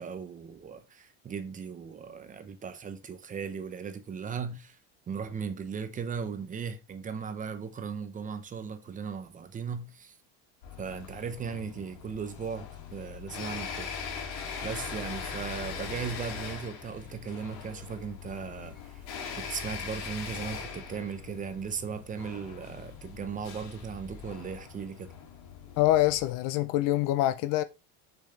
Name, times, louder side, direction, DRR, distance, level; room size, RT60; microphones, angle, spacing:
voice 1, 0.0-4.8 5.1-10.2 10.8-13.9 14.6-19.0 19.4-25.1, right 6 dB, 20° right, 0.7 m, -37 dB
sound 1, 10.6-26.3, left 6 dB, 90° left, 3.3 m, -41 dB
voice 2, 25.8-27.6, left 15 dB, 45° left, 0.5 m, -25 dB
6.7 x 6.1 x 3.2 m
cardioid pair, 170°, 43 cm